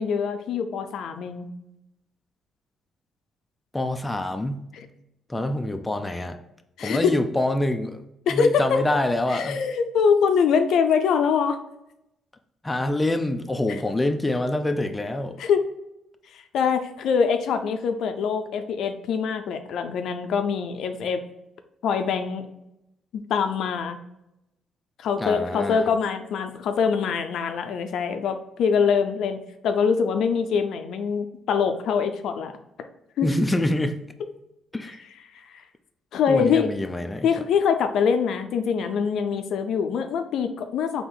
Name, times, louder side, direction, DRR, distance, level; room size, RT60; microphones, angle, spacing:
voice 1, 0.0-1.5 4.7-4.9 6.8-7.1 8.3-8.8 9.3-11.6 13.7-13.8 15.4-15.7 16.3-21.2 21.8-22.4 23.1-24.0 25.0-32.5 33.2-33.3 35.5-35.6 36.1-36.7 37.2-41.0, left 6 dB, 75° left, 8 dB, 0.4 m, -24 dB
voice 2, 3.7-4.6 5.3-6.4 6.8-8.0 8.3-9.6 12.6-15.4 25.2-25.9 33.2-34.0 34.7-35.0 36.3-37.3, left 1 dB, 15° left, 6 dB, 0.4 m, -26 dB
4.0 x 2.9 x 3.8 m, 0.86 s
cardioid pair, 90°, 0 cm